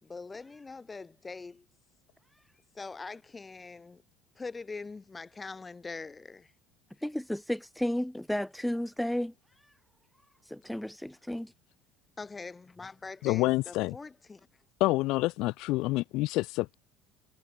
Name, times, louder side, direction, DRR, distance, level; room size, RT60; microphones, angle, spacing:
voice 1, 0.0-1.6 2.7-4.0 4.4-6.5 12.2-14.5, left 4 dB, 20° left, 3.2 m, -43 dB
voice 2, 7.0-9.7 10.4-11.5, left 1 dB, 5° left, 1.1 m, -33 dB
voice 3, 13.2-14.0 14.8-16.7, left 20 dB, 65° left, 0.4 m, -27 dB
supercardioid pair, 105°, 0 cm